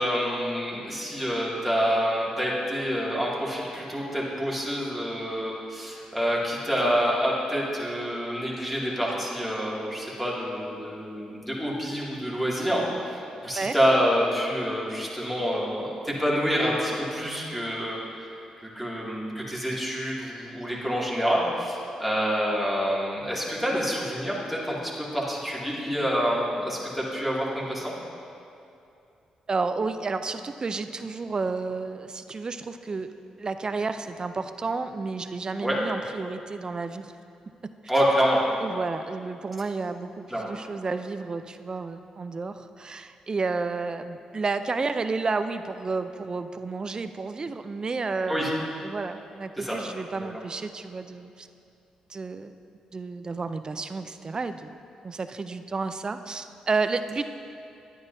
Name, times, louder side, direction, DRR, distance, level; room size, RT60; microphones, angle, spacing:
voice 1, 0.0-18.0 18.6-24.8 25.1-27.9 35.6-35.8 37.9-38.4 40.3-40.5 48.3-48.5 49.6-49.8 50.1-50.3, equal, 5° left, -6 dB, 2.3 m, -27 dB
voice 2, 29.5-33.1 33.4-37.1 38.6-51.5 52.1-52.5 52.9-54.8 55.0-57.2, right 4 dB, 35° right, 10 dB, 0.4 m, -31 dB
10.0 x 9.6 x 2.7 m, 2.6 s
supercardioid pair, 60°, 2 cm